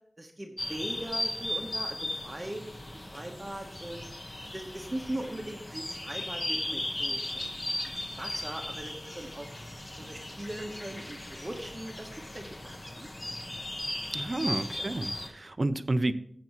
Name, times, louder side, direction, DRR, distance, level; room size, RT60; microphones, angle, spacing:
voice 1, 0.2-2.6 3.1-4.1 4.5-7.5 8.2-9.5 9.9-12.5 12.9-13.1 14.3-14.9, right 1 dB, 30° right, 2 dB, 1.0 m, -40 dB
sound 1, 0.6-15.3, left 1 dB, 40° left, 1.1 m, -37 dB
voice 2, 14.1-16.1, right 2 dB, 45° right, 12 dB, 0.6 m, -30 dB
13.0 x 7.6 x 3.0 m, 0.68 s
wide cardioid pair, 70°, 0 cm